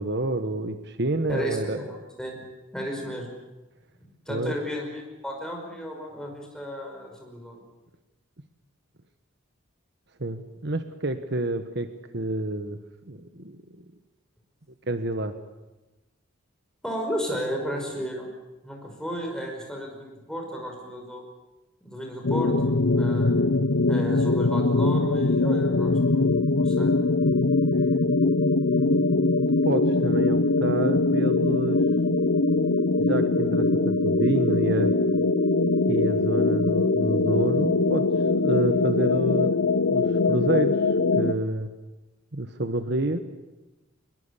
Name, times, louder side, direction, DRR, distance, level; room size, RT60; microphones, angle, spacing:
voice 1, 0.0-1.8 4.3-4.6 10.2-11.9 12.1-12.8 13.1-13.6 14.9-15.3 28.7-31.8 33.0-34.9 35.9-39.6 39.9-40.8 41.1-41.7 42.3-43.2, right 1 dB, 55° right, 9 dB, 1.3 m, -28 dB
voice 2, 1.3-2.4 2.7-3.3 4.3-7.6 16.8-18.3 18.6-21.2 21.8-23.3 23.9-26.9, equal, 5° left, 1 dB, 5.5 m, -33 dB
sound 1, 22.2-41.3, left 3 dB, 65° left, 0.8 m, -22 dB
23.0 x 22.0 x 8.4 m, 1.1 s
head